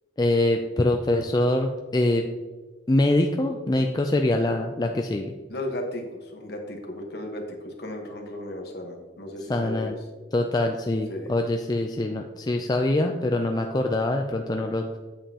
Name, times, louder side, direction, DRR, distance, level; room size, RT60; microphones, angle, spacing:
voice 1, 0.2-2.2 2.9-5.3 9.5-9.9 10.3-15.0, left 1 dB, 20° left, 3 dB, 0.3 m, -24 dB
voice 2, 5.5-6.0 6.3-9.9 11.1-11.3, left 1 dB, 55° left, 2 dB, 1.3 m, -35 dB
8.6 x 7.3 x 2.9 m, 1.4 s
head